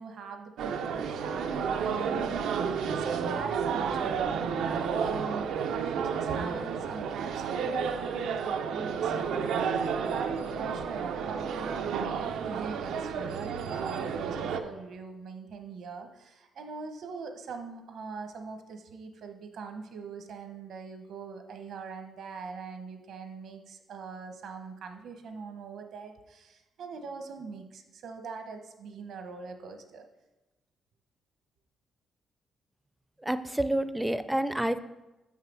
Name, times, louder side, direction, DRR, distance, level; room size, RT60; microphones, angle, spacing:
voice 1, 0.0-5.5 5.8-30.1, right 5 dB, 70° right, 6 dB, 1.0 m, -42 dB
sound 1, 0.6-14.6, right 6 dB, 90° right, 0.6 m, -31 dB
voice 2, 33.2-34.8, right 1 dB, 5° right, 12 dB, 0.4 m, -28 dB
6.7 x 5.7 x 6.1 m, 1.1 s
cardioid pair, 120°, 0 cm